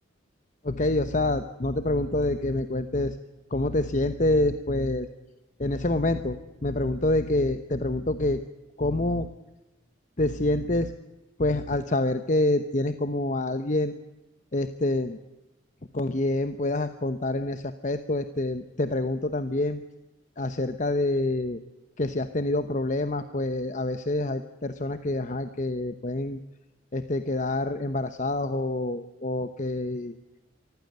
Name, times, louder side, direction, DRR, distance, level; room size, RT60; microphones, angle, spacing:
voice 1, 0.6-3.2 3.5-5.1 5.6-8.4 8.8-9.3 10.2-10.9 11.4-13.9 14.5-15.2 15.9-19.8 20.4-21.6 22.0-26.4 26.9-30.1, left 2 dB, 40° left, 10 dB, 0.9 m, -27 dB
24.0 x 15.0 x 9.3 m, 1.0 s
head